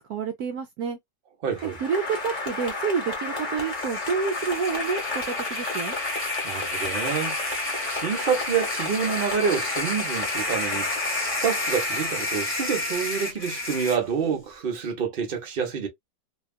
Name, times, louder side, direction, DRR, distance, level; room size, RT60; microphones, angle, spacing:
voice 1, 0.1-1.0 1.6-6.0, right 5 dB, 70° right, 1.0 m, -29 dB
voice 2, 1.4-1.8 6.4-7.4 7.8-11.0 11.4-15.9, right 7 dB, 45° right, 0.8 m, -27 dB
Applause, 1.5-13.0, left 3 dB, 30° left, 1.2 m, -33 dB
sound 1, 3.6-14.0, left 2 dB, 10° left, 1.0 m, -31 dB
2.9 x 2.3 x 2.3 m
omnidirectional pair, 1.8 m